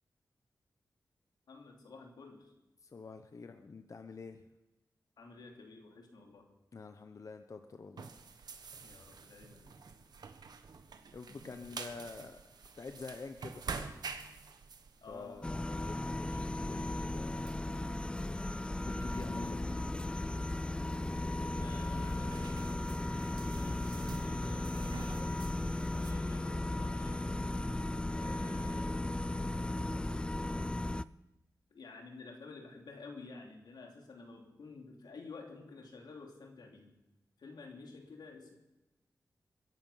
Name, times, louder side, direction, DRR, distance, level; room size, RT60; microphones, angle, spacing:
voice 1, 1.5-2.5 5.2-6.5 8.8-9.7 11.7-11.8 15.0-15.5 21.5-22.7 23.5-25.3 26.0-27.3 28.1-28.9 31.7-37.0 37.4-38.5, left 3 dB, 90° left, 2 dB, 3.0 m, -51 dB
voice 2, 2.8-4.4 6.7-8.1 11.1-12.4 12.8-13.6 15.1-17.6 18.8-19.9, left 4 dB, 50° left, 7 dB, 1.0 m, -47 dB
sound 1, 8.0-26.1, right 5 dB, 75° right, 1.4 m, -49 dB
sound 2, 15.4-31.0, left 2 dB, 15° left, 0.4 m, -36 dB
22.5 x 11.0 x 5.7 m, 1.0 s
wide cardioid pair, 85°, 7 cm